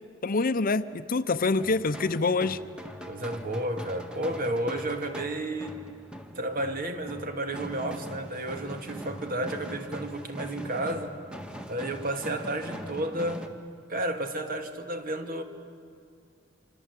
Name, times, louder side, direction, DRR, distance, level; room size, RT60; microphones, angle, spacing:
voice 1, 0.2-2.6, left 3 dB, 50° left, 13 dB, 0.8 m, -26 dB
sound 1, 1.6-13.5, equal, 5° right, 1.7 m, -42 dB
voice 2, 3.1-5.8 6.4-11.2 11.7-13.5 13.9-15.4, right 1 dB, 50° right, 6 dB, 2.4 m, -32 dB
27.0 x 25.5 x 8.3 m, 2.4 s
head